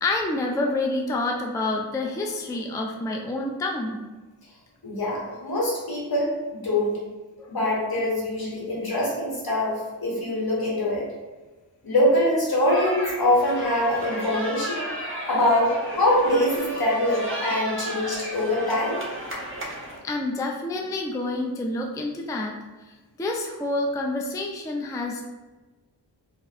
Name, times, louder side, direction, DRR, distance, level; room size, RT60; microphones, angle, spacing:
voice 1, 0.0-4.0 7.4-7.5 20.0-22.5 23.2-25.3, left 2 dB, 10° left, 0 dB, 0.4 m, -28 dB
voice 2, 4.8-7.0 7.5-11.1 11.8-19.0, left 1 dB, 60° left, -4 dB, 1.3 m, -24 dB
sound 1, 12.7-20.0, right 1 dB, 30° right, 0.8 m, -33 dB
3.8 x 2.5 x 2.8 m, 1.2 s
cardioid pair, 45°, 42 cm